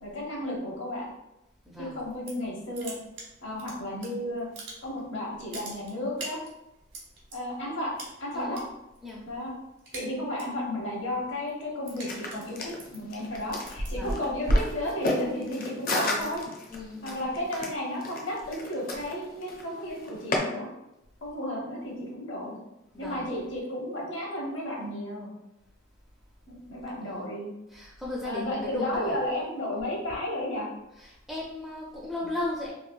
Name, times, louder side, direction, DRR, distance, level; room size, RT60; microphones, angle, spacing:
voice 1, 0.0-1.0 1.8-2.9 3.4-4.5 4.8-6.4 7.3-7.9 8.2-8.6 9.3-9.5 9.9-16.4 17.0-20.7 21.2-22.6 23.0-25.3 26.5-27.5 28.2-30.7, left 1 dB, 70° left, -2 dB, 0.8 m, -33 dB
voice 2, 1.7-2.0 8.3-8.6 9.0-9.2 13.9-14.2 16.7-17.4 22.9-23.3 27.0-27.3 27.7-29.2 31.0-32.7, left 2 dB, ahead, -6 dB, 0.4 m, -36 dB
sound 1, 2.0-2.5 2.7-4.1 4.4-5.1 5.3-7.4 8.0-8.6 8.9-9.2 9.5-10.6 11.0-15.5, equal, 65° right, 1.0 m, -33 dB
sound 2, 11.9-20.4, left 2 dB, 50° left, 0.5 m, -34 dB
3.1 x 2.5 x 2.2 m, 0.91 s
head